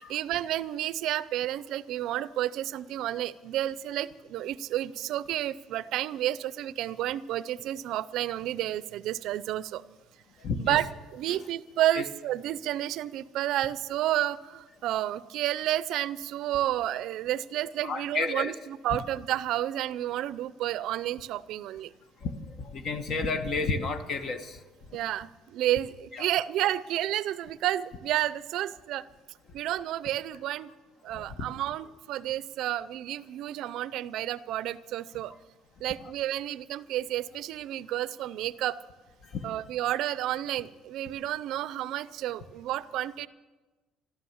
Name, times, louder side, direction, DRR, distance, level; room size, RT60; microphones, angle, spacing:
voice 1, 0.0-9.8 10.6-10.9 11.1-21.9 24.9-29.0 29.5-30.7 31.0-35.3 35.8-38.8 39.4-43.3, right 13 dB, 65° right, 16 dB, 0.5 m, -31 dB
voice 2, 10.4-10.8 11.3-11.4 11.9-12.0 17.8-18.5 22.2-22.3 22.6-24.6 24.9-25.0 26.1-26.3 31.1-31.2 36.0-36.1 39.3-39.5, left 4 dB, 45° left, 8 dB, 1.3 m, -31 dB
14.0 x 13.0 x 7.2 m, 1.2 s
cardioid pair, 135°, 0 cm